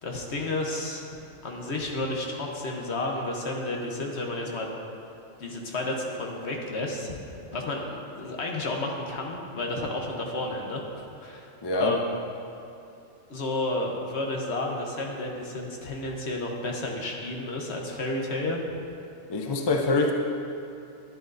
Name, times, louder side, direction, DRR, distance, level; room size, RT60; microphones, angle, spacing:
voice 1, 0.0-4.7 5.4-7.1 7.5-10.8 11.2-12.2 13.3-18.6, left 2 dB, 60° left, 0 dB, 1.2 m, -31 dB
voice 2, 11.6-12.0 19.3-20.1, left 3 dB, 30° left, 2 dB, 0.5 m, -24 dB
11.0 x 10.5 x 2.6 m, 2.7 s
omnidirectional pair, 1.3 m